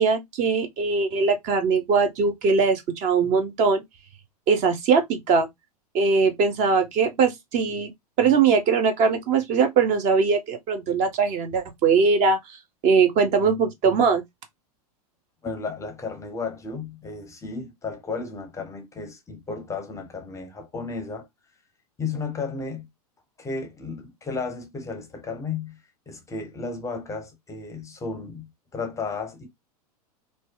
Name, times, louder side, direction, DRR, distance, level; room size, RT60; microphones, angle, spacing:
voice 1, 0.0-3.8 4.5-5.5 5.9-7.9 8.2-12.4 12.8-14.2, right 5 dB, 40° right, 0.6 m, -21 dB
voice 2, 15.4-21.3 22.0-22.9 23.4-25.8 26.1-29.5, left 4 dB, 15° left, 0.6 m, -33 dB
2.7 x 2.1 x 2.2 m
hypercardioid pair, 95°, 20 cm